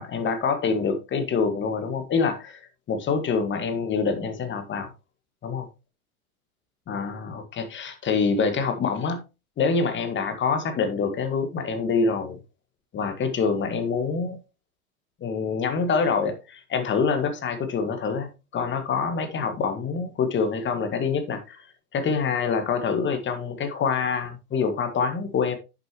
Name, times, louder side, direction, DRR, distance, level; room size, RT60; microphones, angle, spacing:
voice 1, 0.0-4.9 5.4-5.7 6.9-9.2 9.6-12.4 12.9-14.4 15.2-21.7 21.9-25.6, left 5 dB, 25° left, 1.9 m, -26 dB
10.5 x 7.0 x 3.1 m
figure-of-eight pair, 95°, 44 cm